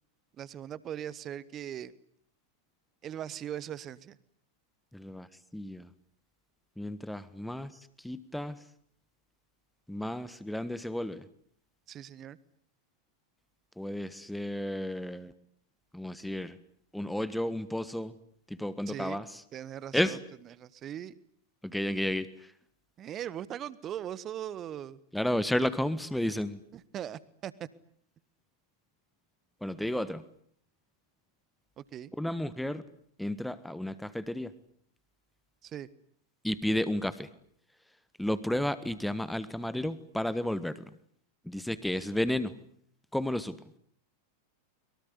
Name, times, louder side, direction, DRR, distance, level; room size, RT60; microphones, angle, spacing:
voice 1, 0.4-1.9 3.0-4.2 11.9-12.4 18.9-19.2 19.5-21.2 23.0-25.0 26.7-27.5 31.8-32.1 35.6-35.9, right 10 dB, 30° right, 19 dB, 1.4 m, -40 dB
voice 2, 4.9-5.3 5.5-5.9 6.8-7.7 8.0-8.5 9.9-11.2 13.8-15.3 15.9-16.6 16.9-18.1 18.6-19.2 19.9-20.2 21.6-22.3 25.1-26.6 29.6-30.2 32.2-32.8 33.2-34.5 36.4-37.3 38.2-40.7 41.5-42.5 43.1-43.5, left 1 dB, ahead, 14 dB, 1.4 m, -32 dB
23.5 x 23.0 x 9.8 m, 0.64 s
figure-of-eight pair, 90°, 0 cm